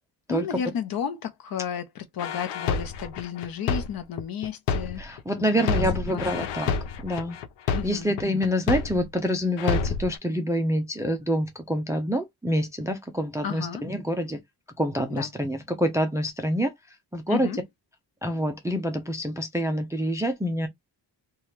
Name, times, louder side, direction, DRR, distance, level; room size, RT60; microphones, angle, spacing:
voice 1, 0.3-6.5 7.7-8.1 13.4-13.8 15.1-15.3 17.3-17.6, left 7 dB, 60° left, 0.8 m, -33 dB
sound 1, 2.2-5.2 5.6-9.2 9.6-10.2, left 5 dB, 90° left, 0.6 m, -28 dB
voice 2, 5.0-6.7 7.0-7.4 7.6-14.4 14.8-17.5 18.2-20.7, equal, 10° right, 0.3 m, -27 dB
2.8 x 2.4 x 3.2 m
wide cardioid pair, 150°, 41 cm